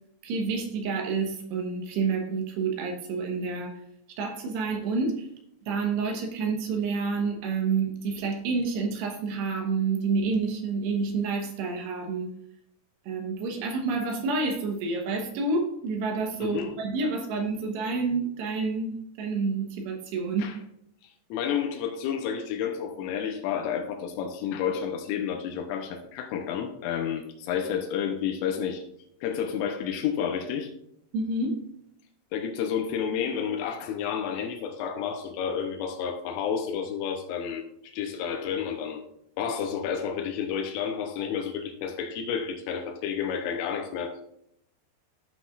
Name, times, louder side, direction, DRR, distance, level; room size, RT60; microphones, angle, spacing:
voice 1, 0.2-3.8 4.2-5.3 5.7-12.3 13.1-18.9 19.2-20.5 31.1-31.6, right 4 dB, 70° right, 3 dB, 2.9 m, -28 dB
voice 2, 16.4-16.7 20.4-20.6 21.3-28.8 29.2-30.7 32.3-39.0 39.4-44.2, left 8 dB, 85° left, 4 dB, 3.4 m, -30 dB
15.0 x 5.9 x 2.5 m, 0.75 s
omnidirectional pair, 5.7 m